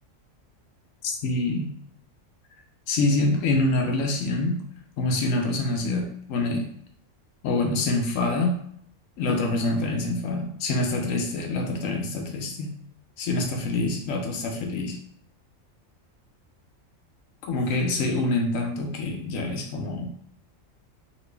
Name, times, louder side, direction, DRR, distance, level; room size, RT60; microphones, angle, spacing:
voice 1, 1.0-1.7 2.9-4.6 5.0-6.7 7.4-8.6 9.2-12.7 13.2-15.0 17.4-20.1, left 2 dB, 85° left, 2 dB, 1.0 m, -26 dB
3.0 x 2.6 x 3.2 m, 0.67 s
omnidirectional pair, 1.3 m